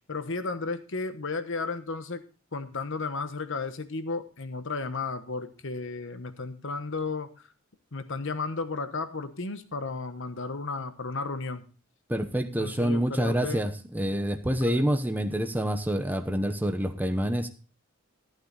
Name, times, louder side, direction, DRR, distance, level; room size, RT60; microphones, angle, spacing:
voice 1, 0.1-2.2 2.5-7.3 7.9-11.7 12.6-13.6 14.6-14.8, left 3 dB, 65° left, 11 dB, 1.2 m, -33 dB
voice 2, 12.1-17.5, equal, 10° right, 7 dB, 0.9 m, -27 dB
14.0 x 8.8 x 4.0 m, 0.36 s
head